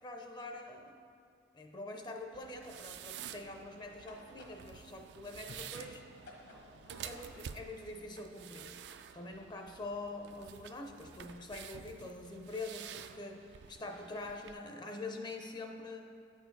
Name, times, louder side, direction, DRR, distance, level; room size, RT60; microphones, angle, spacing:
voice 1, 0.0-1.0 1.5-6.0 7.0-8.8 9.1-16.1, left 2 dB, 25° left, 3 dB, 0.5 m, -45 dB
sound 1, 2.2-7.5, left 2 dB, 75° left, 1.2 m, -58 dB
sound 2, 2.3-14.5, right 8 dB, 70° right, 0.3 m, -50 dB
8.9 x 4.5 x 4.6 m, 2.6 s
head